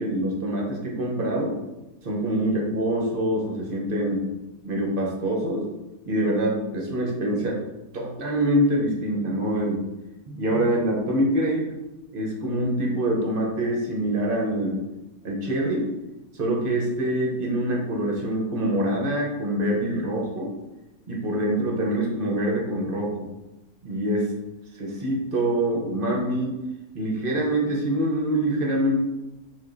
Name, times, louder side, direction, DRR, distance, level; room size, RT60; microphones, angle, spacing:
voice 1, 0.0-1.6 2.0-4.2 4.6-5.7 6.1-7.6 7.9-9.8 10.3-11.7 12.1-14.8 15.2-15.9 16.3-20.5 21.1-23.3 23.8-24.3 24.7-26.5 26.9-29.0, right 1 dB, 45° right, -2 dB, 0.7 m, -25 dB
4.9 x 3.7 x 2.6 m, 1.0 s
omnidirectional pair, 1.7 m